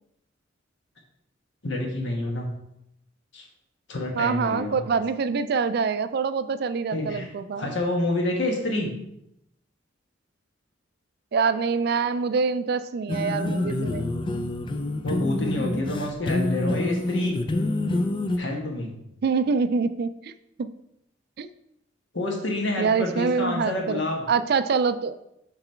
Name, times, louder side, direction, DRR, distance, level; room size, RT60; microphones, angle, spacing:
voice 1, 1.6-2.5 3.3-3.4 3.9-4.8 6.9-7.3 7.6-8.9 15.0-17.4 18.4-18.9 22.1-24.3, left 2 dB, 65° left, 1 dB, 1.3 m, -28 dB
voice 2, 4.2-7.7 11.3-14.0 19.2-20.3 20.6-20.7 21.4-21.5 22.8-25.2, right 5 dB, 55° right, 12 dB, 0.3 m, -25 dB
sound 1, 13.1-18.4, left 2 dB, 25° left, 0.4 m, -27 dB
5.9 x 4.0 x 4.4 m, 0.81 s
head